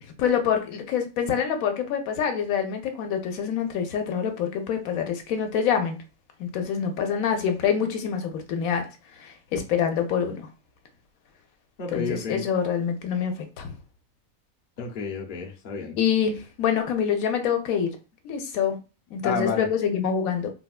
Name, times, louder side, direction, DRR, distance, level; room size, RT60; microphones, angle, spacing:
voice 1, 0.2-6.0 6.4-8.8 9.2-10.5 11.9-13.7 16.0-18.0 18.2-18.8 19.1-20.5, left 7 dB, 85° left, 5 dB, 1.0 m, -26 dB
voice 2, 11.8-12.4 14.8-16.0 19.2-19.7, left 5 dB, 50° left, 0 dB, 0.7 m, -30 dB
3.9 x 2.2 x 2.3 m, 0.32 s
omnidirectional pair, 1.4 m